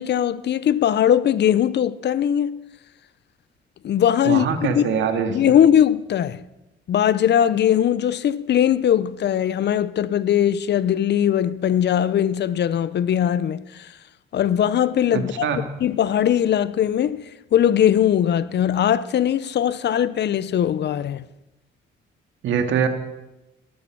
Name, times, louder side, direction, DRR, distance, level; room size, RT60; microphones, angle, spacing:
voice 1, 0.0-2.6 3.8-4.5 4.7-5.0 5.3-6.4 6.9-13.9 14.3-17.2 17.5-21.2, left 10 dB, 60° left, 0.8 m, -20 dB
voice 2, 4.3-5.4 15.1-15.6 22.4-22.9, right 7 dB, 75° right, 2.2 m, -23 dB
18.5 x 13.0 x 6.0 m
cardioid pair, 90°, 20 cm